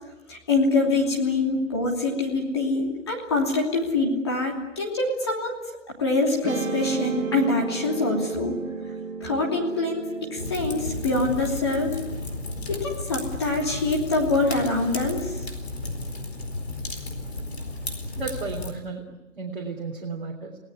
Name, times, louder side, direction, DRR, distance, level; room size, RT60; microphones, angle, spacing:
voice 1, 0.3-5.6 6.0-8.6 9.2-12.0 12.7-15.3, left 2 dB, 20° left, -1 dB, 3.0 m, -25 dB
Guitar, 6.4-12.9, right 4 dB, 75° right, 2.5 m, -34 dB
Fire, 10.4-18.7, left 2 dB, 50° left, 4.5 m, -33 dB
voice 2, 18.2-19.0 19.4-20.6, right 4 dB, 40° right, -1 dB, 3.5 m, -33 dB
30.0 x 18.5 x 9.7 m, 1.0 s
hypercardioid pair, 175°, 40 cm